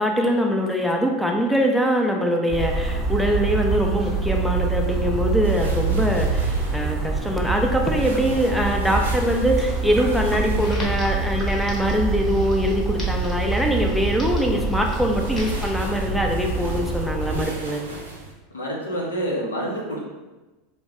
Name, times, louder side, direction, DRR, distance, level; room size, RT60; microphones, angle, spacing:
voice 1, 0.0-17.8, equal, ahead, 1 dB, 0.4 m, -23 dB
sound 1, 2.5-17.4, right 3 dB, 15° right, 0.8 m, -25 dB
sound 2, 5.4-18.3, right 2 dB, 80° right, 0.5 m, -40 dB
Crackle, 10.6-15.7, left 1 dB, 30° left, 0.9 m, -41 dB
voice 2, 18.5-20.0, equal, 90° left, -2 dB, 0.6 m, -27 dB
2.2 x 2.1 x 3.4 m, 1.1 s
hypercardioid pair, 90°, 0 cm